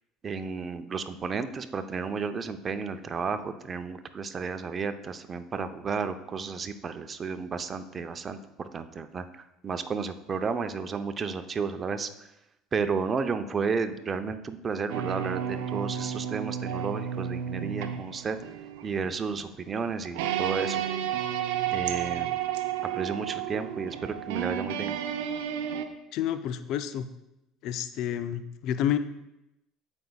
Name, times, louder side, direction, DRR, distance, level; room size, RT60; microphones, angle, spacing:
voice 1, 0.2-12.1 12.7-18.4 18.8-20.8 21.7-22.4 22.9-25.0, right 5 dB, 35° right, 9 dB, 0.7 m, -32 dB
sound 1, 14.9-25.8, right 9 dB, 80° right, 0.6 m, -32 dB
voice 2, 26.1-27.1 27.6-29.0, left 10 dB, 65° left, 11 dB, 0.4 m, -29 dB
14.5 x 5.3 x 2.3 m, 0.89 s
hypercardioid pair, 75°, 0 cm